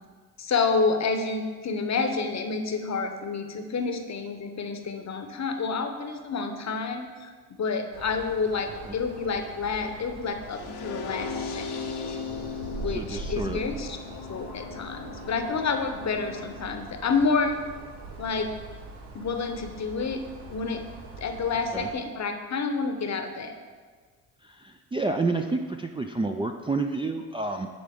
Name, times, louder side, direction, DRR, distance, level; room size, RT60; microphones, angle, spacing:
voice 1, 0.4-12.2 12.8-14.0 14.3-17.6 18.2-18.5 19.1-20.2 20.5-20.8 21.2-23.5, left 4 dB, 40° left, 6 dB, 0.8 m, -29 dB
sound 1, 7.9-21.9, right 3 dB, 85° right, 1.1 m, -42 dB
sound 2, 10.5-16.5, left 5 dB, 70° left, 0.9 m, -37 dB
voice 2, 12.9-13.6 21.7-21.9 24.4-27.7, right 3 dB, 15° right, 2 dB, 0.3 m, -29 dB
10.0 x 4.0 x 3.6 m, 1.5 s
hypercardioid pair, 50°, 41 cm